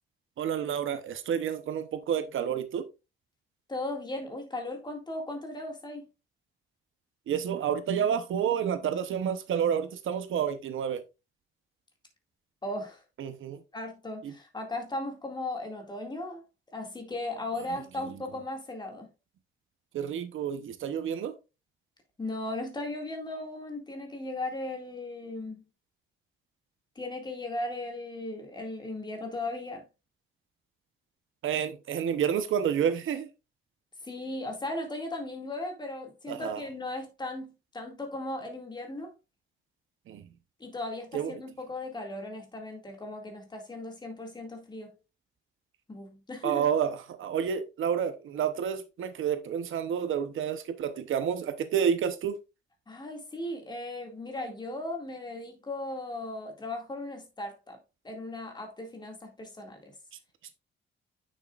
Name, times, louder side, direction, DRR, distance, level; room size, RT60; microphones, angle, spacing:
voice 1, 0.4-2.9 7.3-11.0 13.2-13.6 14.2-14.3 19.9-21.3 31.4-33.3 36.3-36.6 40.1-40.2 41.1-41.3 46.4-52.4, right 8 dB, 70° right, 0.9 m, -29 dB
voice 2, 3.7-6.1 12.6-13.0 13.7-16.4 16.7-19.1 22.2-25.6 27.0-29.8 34.0-39.1 40.6-44.9 45.9-46.7 52.9-57.8 58.0-59.9, left 2 dB, 20° left, 2.2 m, -37 dB
9.2 x 6.6 x 2.4 m
cardioid pair, 155°, 21 cm